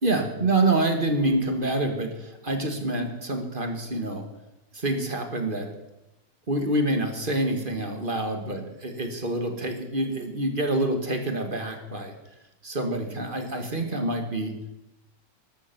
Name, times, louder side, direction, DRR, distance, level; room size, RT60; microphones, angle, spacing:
voice 1, 0.0-4.2 4.7-5.7 6.5-12.1 12.6-14.5, right 2 dB, 30° right, 5 dB, 2.0 m, -27 dB
13.5 x 12.5 x 6.1 m, 0.93 s
omnidirectional pair, 1.9 m